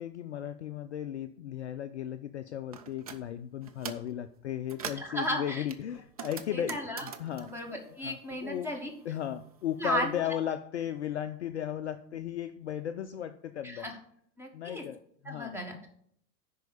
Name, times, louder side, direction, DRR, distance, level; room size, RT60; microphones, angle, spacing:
voice 1, 0.0-7.5 8.0-8.7 9.0-13.9 14.5-15.6, left 10 dB, 45° left, 0.5 m, -36 dB
sound 1, 2.7-3.2 3.6-4.1 4.5-5.2 5.7-8.6 8.9-10.0, right 7 dB, 25° right, 0.4 m, -43 dB
voice 2, 4.9-5.6 6.5-7.0 7.4-8.9 9.8-10.4 13.6-13.9 14.4-14.8 15.2-15.9, equal, 5° right, 1.4 m, -35 dB
10.5 x 4.6 x 6.8 m
figure-of-eight pair, 105°, 50 cm